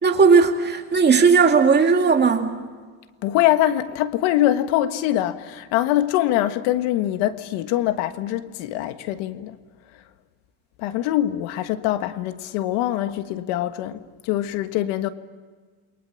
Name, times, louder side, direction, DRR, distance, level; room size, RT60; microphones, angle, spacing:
voice 1, 0.0-2.6, right 5 dB, 20° right, 2.4 m, -16 dB
voice 2, 3.2-9.6 10.8-15.1, left 13 dB, 85° left, 1.7 m, -23 dB
29.0 x 23.0 x 7.2 m
cardioid pair, 150°, 47 cm